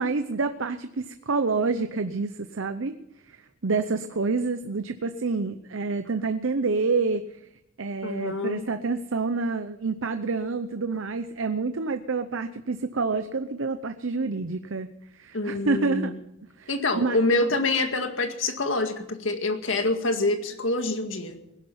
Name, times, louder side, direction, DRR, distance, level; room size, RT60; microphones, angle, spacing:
voice 1, 0.0-2.9 3.3-7.2 7.8-14.9 15.2-16.1 16.6-17.2, right 4 dB, 85° right, 10 dB, 0.7 m, -28 dB
voice 2, 8.0-8.6 15.3-16.2 16.7-21.4, left 2 dB, 80° left, 6 dB, 2.0 m, -26 dB
20.5 x 11.0 x 5.7 m, 0.87 s
head